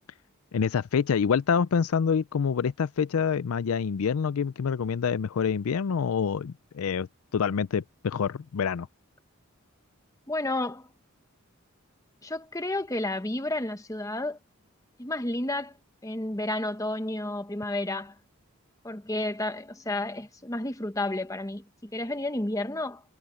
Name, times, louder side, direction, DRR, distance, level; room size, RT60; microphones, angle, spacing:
voice 1, 0.5-7.1 7.3-8.9, left 6 dB, 75° left, 0.4 m, -26 dB
voice 2, 10.3-10.9 12.2-14.4 15.0-15.7 16.0-18.1 18.8-23.0, left 1 dB, 15° left, 1.0 m, -31 dB
head